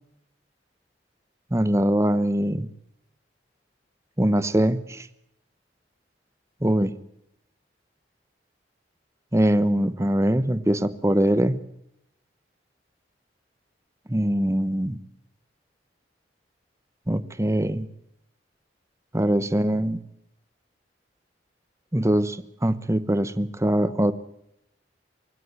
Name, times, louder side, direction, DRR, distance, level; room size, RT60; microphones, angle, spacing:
voice 1, 1.5-2.7 4.2-5.1 6.6-6.9 9.3-11.6 14.1-15.0 17.1-17.9 19.1-20.0 21.9-24.1, right 1 dB, 15° right, 14 dB, 1.0 m, -22 dB
23.0 x 16.5 x 7.5 m, 0.78 s
head